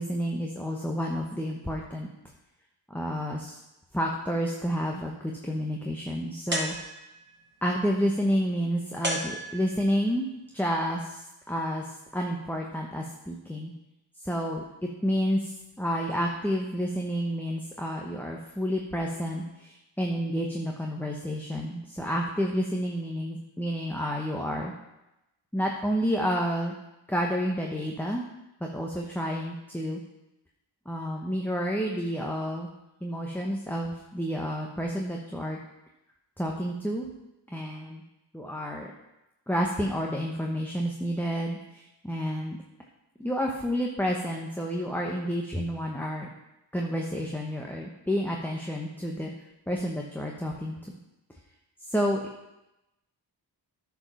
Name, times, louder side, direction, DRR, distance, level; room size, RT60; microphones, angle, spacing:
voice 1, 0.0-2.1 2.9-3.6 3.9-6.8 7.6-10.3 10.5-13.7 14.2-14.6 15.0-24.7 25.5-26.7 27.1-28.2 28.6-30.0 30.8-32.7 33.0-35.6 36.4-37.1 37.5-38.0 38.3-38.9 39.5-42.6 43.2-46.3 46.7-49.3 49.7-51.0 51.9-52.2, equal, 5° left, -1 dB, 1.2 m, -30 dB
sound 1, 6.5-7.4 9.0-10.0, right 1 dB, 25° right, 2.1 m, -33 dB
9.6 x 5.2 x 5.8 m, 0.94 s
cardioid pair, 45°, 47 cm